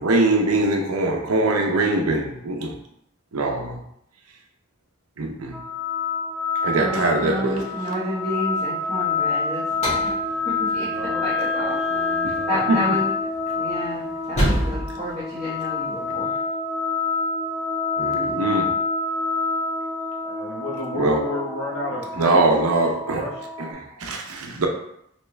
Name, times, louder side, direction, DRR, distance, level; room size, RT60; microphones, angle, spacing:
voice 1, 0.0-2.8 3.3-3.8 5.2-5.6 6.6-7.7 12.2-13.0 18.0-18.7 21.0-21.2 22.2-23.2 23.6-24.7, right 2 dB, 85° right, 0.6 m, -22 dB
sound 1, 5.5-23.7, left 4 dB, 5° right, 0.4 m, -27 dB
voice 2, 6.7-9.6 9.9-10.0 10.6-10.9 11.2-11.8 12.5-13.1 13.5-16.3, equal, 15° left, 1.2 m, -30 dB
sound 2, 9.7-16.1, equal, 30° left, 1.3 m, -30 dB
voice 3, 10.7-12.6 20.2-22.4 23.1-23.3 24.4-24.7, left 1 dB, 85° left, 0.9 m, -32 dB
3.4 x 2.9 x 3.2 m
head